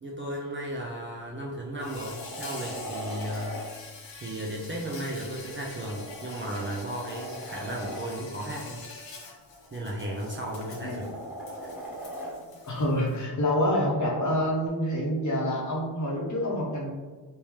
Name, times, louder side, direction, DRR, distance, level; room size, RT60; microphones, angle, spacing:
voice 1, 0.0-3.7 4.2-8.9 9.7-11.1 11.6-11.7, right 1 dB, 30° right, -3 dB, 0.4 m, -35 dB
sound 1, 1.4-3.7 5.3-8.1 9.6-12.4 14.7-14.8, right 1 dB, 5° right, 0.8 m, -40 dB
Insect, 1.8-13.2, left 4 dB, 80° left, 0.8 m, -45 dB
voice 2, 12.6-16.9, left 1 dB, 40° left, -2 dB, 0.9 m, -27 dB
3.5 x 2.8 x 3.1 m, 1.3 s
wide cardioid pair, 145°, 44 cm